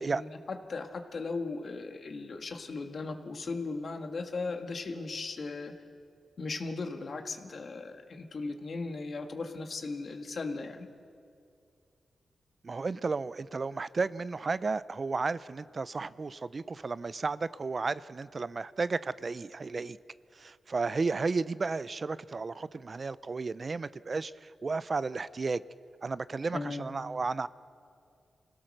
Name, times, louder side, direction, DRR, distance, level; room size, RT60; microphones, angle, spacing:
voice 1, 0.0-5.7 6.4-10.9 26.5-26.9, left 3 dB, 60° left, 5 dB, 1.8 m, -37 dB
voice 2, 12.6-20.0 20.3-25.6 26.0-27.5, right 4 dB, 45° right, 16 dB, 0.5 m, -33 dB
27.0 x 16.5 x 6.5 m, 2.4 s
cardioid pair, 60°, 0 cm